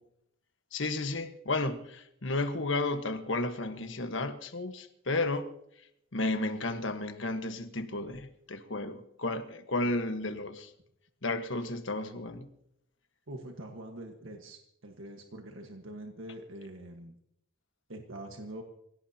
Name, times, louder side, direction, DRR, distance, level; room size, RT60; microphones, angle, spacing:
voice 1, 0.7-5.5 6.1-10.7 11.2-12.5, left 2 dB, 70° left, 1.4 m, -33 dB
voice 2, 13.3-17.1 17.9-18.6, right 1 dB, 85° right, 1.6 m, -44 dB
25.5 x 17.0 x 2.9 m
head